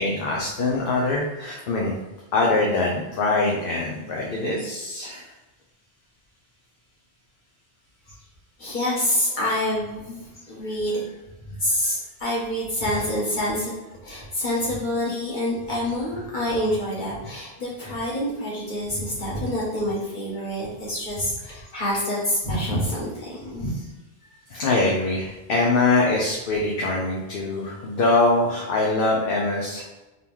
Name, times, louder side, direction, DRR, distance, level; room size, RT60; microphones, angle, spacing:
voice 1, 0.0-2.0 2.3-5.3 23.7-23.9 24.5-29.9, left 2 dB, 65° left, -2 dB, 0.9 m, -23 dB
voice 2, 8.6-11.1 11.6-13.7 14.0-23.7, left 1 dB, 50° left, -6 dB, 1.6 m, -27 dB
3.8 x 2.9 x 3.5 m, 1.1 s
omnidirectional pair, 1.1 m